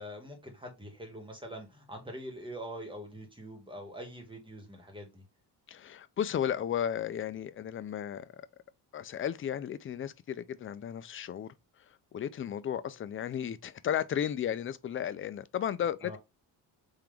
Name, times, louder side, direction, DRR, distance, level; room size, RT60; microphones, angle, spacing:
voice 1, 0.0-5.2 16.0-16.2, equal, 10° right, 1.7 m, -44 dB
voice 2, 5.7-8.3 8.9-11.5 12.1-16.2, left 9 dB, 30° left, 0.4 m, -34 dB
3.7 x 2.9 x 3.3 m
cardioid pair, 90°, 43 cm